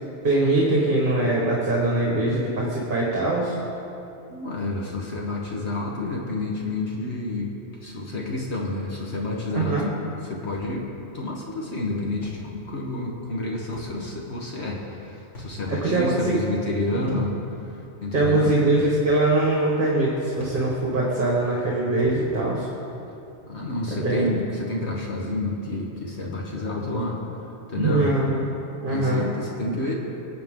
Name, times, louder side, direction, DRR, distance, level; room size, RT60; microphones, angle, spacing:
voice 1, 0.2-3.6 9.5-9.9 15.7-16.4 16.9-17.2 18.1-22.7 23.9-24.4 27.7-28.5 28.8-29.3, right 2 dB, 45° right, -4 dB, 1.7 m, -22 dB
voice 2, 4.3-7.5 7.8-9.9 10.3-17.3 18.0-18.6 23.5-27.2 27.7-28.1 28.9-29.9, left 2 dB, 65° left, -2 dB, 1.6 m, -29 dB
sound 1, 10.5-10.7 12.2-12.5 13.7-14.0 15.3-15.6 17.1-17.3 18.8-19.0 20.4-20.7 22.0-22.2, right 1 dB, 85° left, 3.1 m, -40 dB
21.5 x 8.4 x 3.7 m, 2.8 s
omnidirectional pair, 1.2 m